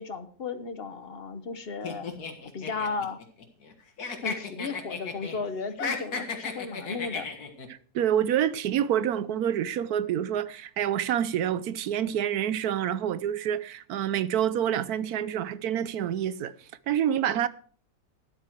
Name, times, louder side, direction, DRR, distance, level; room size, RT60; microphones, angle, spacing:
voice 1, 0.0-2.1 2.5-3.2 4.2-7.3, left 4 dB, 40° left, 1.1 m, -35 dB
sound 1, 1.8-3.7 4.0-5.4 5.7-7.7, left 4 dB, 70° left, 2.2 m, -34 dB
voice 2, 7.9-16.5 16.9-17.5, right 10 dB, 70° right, 1.2 m, -27 dB
13.0 x 11.5 x 4.5 m
omnidirectional pair, 1.7 m